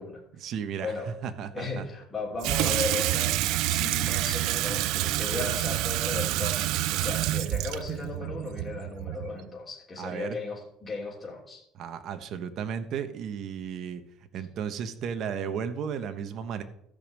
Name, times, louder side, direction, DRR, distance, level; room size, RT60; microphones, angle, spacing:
voice 1, 0.4-0.9 1.2-1.9 10.0-10.4 11.8-14.0 14.3-16.6, right 7 dB, 50° right, 8 dB, 1.2 m, -34 dB
voice 2, 1.5-11.6, left 3 dB, 15° left, -4 dB, 3.1 m, -36 dB
Water tap faucet / Sink (filling or washing), 2.4-9.4, right 16 dB, 70° right, 0.4 m, -28 dB
13.5 x 5.4 x 7.6 m, 0.73 s
cardioid pair, 130°, 0 cm